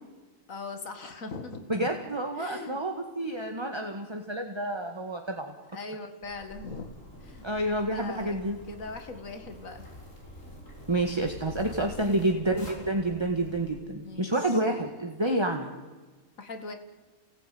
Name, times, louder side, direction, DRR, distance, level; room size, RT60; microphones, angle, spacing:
voice 1, 0.5-1.7 2.4-2.8 5.7-6.9 7.2-7.5 7.9-8.4 8.7-9.9 12.0-12.2 14.0-14.6 16.4-16.7, left 3 dB, 90° left, 7 dB, 2.3 m, -40 dB
voice 2, 1.7-5.5 7.4-8.6 10.9-15.7, right 1 dB, 20° right, 3 dB, 1.8 m, -29 dB
Zipper (clothing), 6.2-13.7, left 1 dB, 75° left, 6.5 m, -47 dB
28.0 x 18.5 x 9.4 m, 1.3 s
omnidirectional pair, 1.4 m